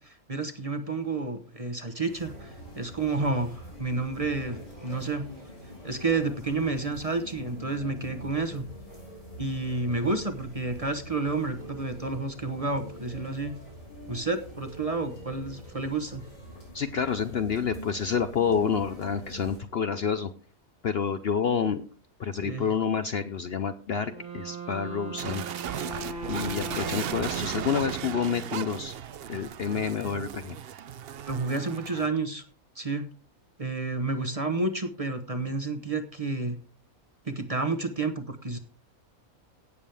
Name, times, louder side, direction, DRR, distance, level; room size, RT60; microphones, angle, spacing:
voice 1, 0.0-5.3 5.8-8.6 9.4-13.5 14.1-16.3 22.4-22.7 31.3-32.4 32.8-33.1 33.6-36.6 37.2-38.6, right 3 dB, 25° right, 7 dB, 1.0 m, -30 dB
sound 1, 2.0-19.6, equal, 90° left, 7.6 m, -44 dB
voice 2, 16.7-20.3 20.8-21.8 22.2-25.4 26.3-28.9 29.3-30.6, left 7 dB, 55° left, 9 dB, 0.8 m, -28 dB
Wind instrument woodwind instrument, 24.0-28.9, right 3 dB, 75° right, 3.2 m, -39 dB
sound 2, 25.2-32.1, right 9 dB, 60° right, 0.7 m, -36 dB
17.0 x 7.2 x 3.4 m, 0.40 s
omnidirectional pair, 1.5 m